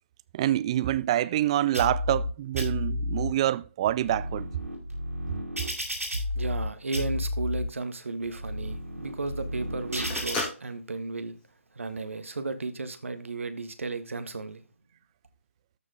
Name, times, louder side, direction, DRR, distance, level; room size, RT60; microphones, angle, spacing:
voice 1, 0.3-4.5, right 13 dB, 25° right, 0.4 m, -26 dB
sound 1, 1.7-2.3 2.6-3.3 3.9-6.7 6.9-7.6 8.2-10.4, left 1 dB, 90° right, 5.2 m, -32 dB
voice 2, 6.3-11.4 11.7-14.6, right 3 dB, 70° right, 1.5 m, -34 dB
Telephone, 7.3-12.4, left 3 dB, 15° left, 2.2 m, -39 dB
13.5 x 5.0 x 3.7 m
figure-of-eight pair, 145°, 7 cm